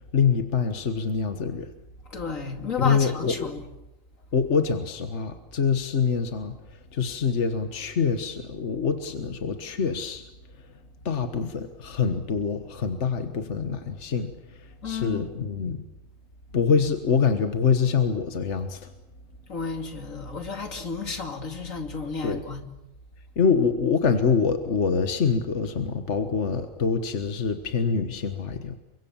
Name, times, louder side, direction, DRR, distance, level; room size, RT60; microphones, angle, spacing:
voice 1, 0.1-1.7 2.8-3.5 4.3-10.2 11.0-15.8 16.5-18.9 22.2-22.4 23.4-28.8, left 6 dB, 60° left, 1.7 m, -25 dB
voice 2, 2.1-3.6 14.8-15.2 19.5-22.7, left 4 dB, 85° left, 3.0 m, -32 dB
29.5 x 24.5 x 7.2 m
omnidirectional pair, 1.3 m